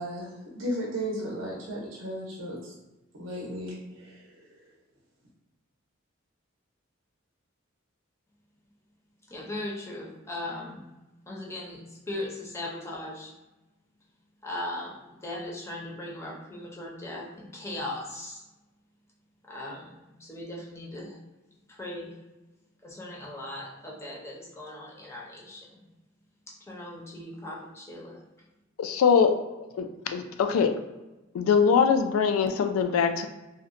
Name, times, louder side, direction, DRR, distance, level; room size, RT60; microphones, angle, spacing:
voice 1, 0.0-2.7 3.1-4.5, equal, 65° right, -4 dB, 0.6 m, -35 dB
voice 2, 9.3-10.8 11.3-13.3 14.4-18.4 19.4-21.2 21.7-22.1 22.8-25.8 26.5-28.2, left 1 dB, 15° left, -3 dB, 0.5 m, -38 dB
voice 3, 28.8-30.7 31.3-33.3, left 6 dB, 90° left, 11 dB, 0.3 m, -23 dB
2.7 x 2.1 x 2.4 m, 1.0 s
head